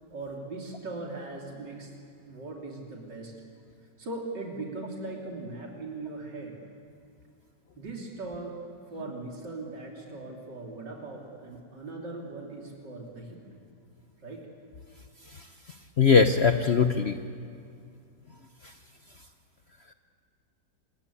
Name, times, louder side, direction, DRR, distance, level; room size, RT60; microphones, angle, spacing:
voice 1, 0.1-1.9 2.3-3.3 4.0-6.6 7.8-8.6 8.9-13.6 14.2-14.5, right 2 dB, 90° right, -1 dB, 3.9 m, -39 dB
voice 2, 16.0-17.1, left 5 dB, 50° left, 7 dB, 0.9 m, -20 dB
26.5 x 21.5 x 8.5 m, 2.4 s
omnidirectional pair, 1.8 m